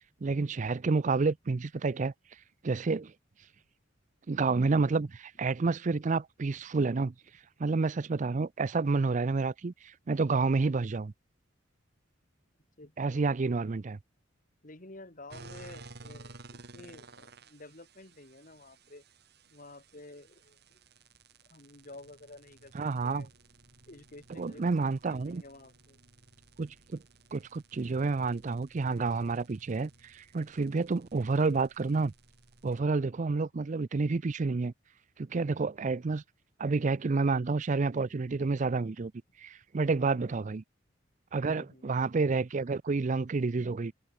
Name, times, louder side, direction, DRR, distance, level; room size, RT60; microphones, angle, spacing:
voice 1, 0.2-2.1 2.6-3.1 4.3-7.1 7.6-11.1 13.0-14.0 22.7-23.3 24.4-25.4 26.6-27.0 27.3-32.1 32.6-34.7 35.2-36.2 36.6-39.1 39.4-40.6 41.3-43.9, right 4 dB, 40° right, 0.5 m, -29 dB
voice 2, 12.8-13.3 14.6-19.0 19.5-20.8 21.5-22.7 23.0-23.3 23.9-24.6 25.0-26.0 41.5-41.9, left 2 dB, 45° left, 2.9 m, -51 dB
sound 1, 15.3-32.8, right 3 dB, 55° right, 2.9 m, -55 dB
head